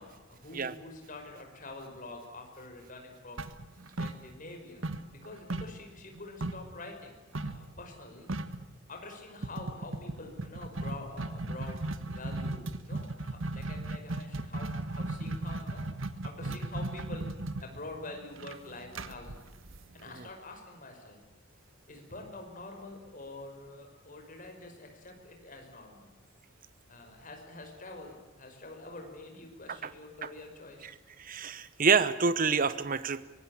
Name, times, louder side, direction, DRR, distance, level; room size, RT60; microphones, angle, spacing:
voice 1, 0.0-3.4 4.0-4.8 5.1-8.3 8.9-11.8 12.1-15.9 16.2-17.3 17.6-19.4 19.9-21.2 21.9-26.1 26.9-30.9, left 2 dB, 40° left, 3 dB, 5.6 m, -46 dB
sound 1, 3.4-4.6 4.8-6.7 7.3-7.7 8.0-8.1 8.3-8.7 9.4-20.2, right 2 dB, 70° right, 1.5 m, -36 dB
voice 2, 31.2-33.2, right 5 dB, 40° right, 14 dB, 0.9 m, -27 dB
23.5 x 18.5 x 8.6 m, 1.2 s
head